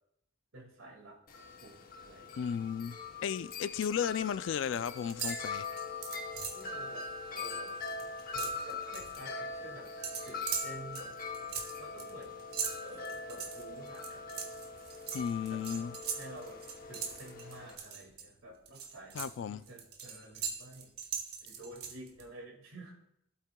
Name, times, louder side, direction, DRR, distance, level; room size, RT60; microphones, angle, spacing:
voice 1, 0.5-1.2 1.6-2.4 6.5-7.8 8.3-9.9 10.2-11.3 11.8-12.4 12.8-14.4 15.5-20.9 21.4-23.0, right 2 dB, 80° right, 2.1 m, -50 dB
Wind chime, 1.3-17.7, left 4 dB, 45° left, 0.8 m, -42 dB
voice 2, 2.4-5.7 15.1-15.9 19.1-19.6, left 7 dB, 65° left, 0.3 m, -34 dB
sound 1, 3.4-4.0 4.3-4.8 5.1-6.7 7.1-7.3 7.6-9.2 10.0-18.2 18.6-22.2, right 7 dB, 50° right, 1.2 m, -41 dB
15.0 x 8.2 x 2.3 m
head